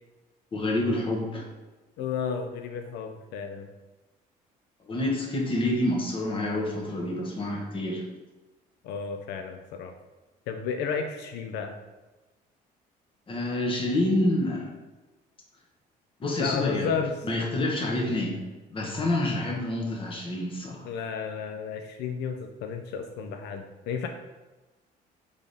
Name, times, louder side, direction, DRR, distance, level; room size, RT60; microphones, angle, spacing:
voice 1, 0.5-1.4 4.8-8.0 13.3-14.7 16.2-16.9 17.2-18.4 18.7-20.9, left 1 dB, 30° left, 0 dB, 1.0 m, -28 dB
voice 2, 2.0-3.7 8.8-9.9 10.5-11.8 16.4-17.1 20.8-24.1, left 6 dB, 85° left, 5 dB, 0.4 m, -32 dB
3.6 x 3.4 x 4.0 m, 1.2 s
cardioid pair, 110°, 17 cm